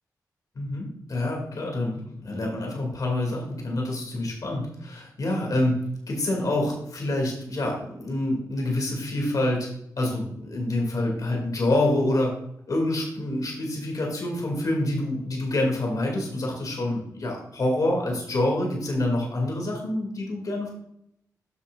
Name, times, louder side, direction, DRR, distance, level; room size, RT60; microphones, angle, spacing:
voice 1, 0.6-9.7 10.0-12.3 12.7-20.7, left 1 dB, 60° left, 0 dB, 2.5 m, -27 dB
9.4 x 6.2 x 2.5 m, 0.75 s
cardioid pair, 55°, 7 cm